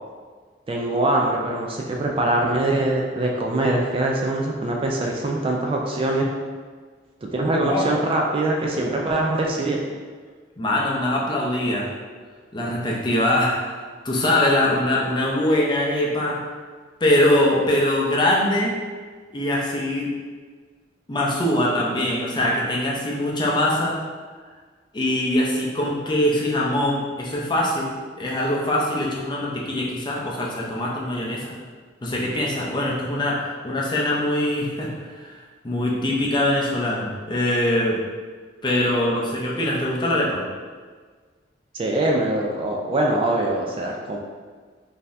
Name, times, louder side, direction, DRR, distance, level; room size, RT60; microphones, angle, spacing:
voice 1, 0.7-6.3 7.2-9.8 41.7-44.2, right 1 dB, 30° right, -1 dB, 0.3 m, -23 dB
voice 2, 10.6-11.9 12.5-16.4 17.0-18.8 19.3-20.1 21.1-24.0 24.9-27.9 28.2-31.5 32.0-35.4 35.6-38.0 38.6-40.4, left 1 dB, 25° left, -3 dB, 0.5 m, -22 dB
3.8 x 2.7 x 2.5 m, 1.5 s
head